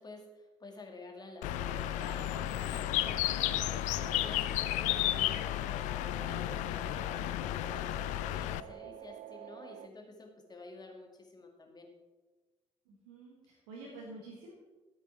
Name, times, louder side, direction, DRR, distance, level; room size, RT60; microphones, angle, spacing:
voice 1, 0.0-7.9 8.2-11.9, left 3 dB, 30° left, 3 dB, 1.9 m, -50 dB
Bird, 1.4-8.6, left 15 dB, 60° left, 0.4 m, -33 dB
sound 1, 1.5-9.9, right 13 dB, 50° right, 0.4 m, -49 dB
voice 2, 12.9-14.5, right 2 dB, 70° right, -3 dB, 1.6 m, -49 dB
13.0 x 8.2 x 4.4 m, 1.2 s
figure-of-eight pair, 45°, 14 cm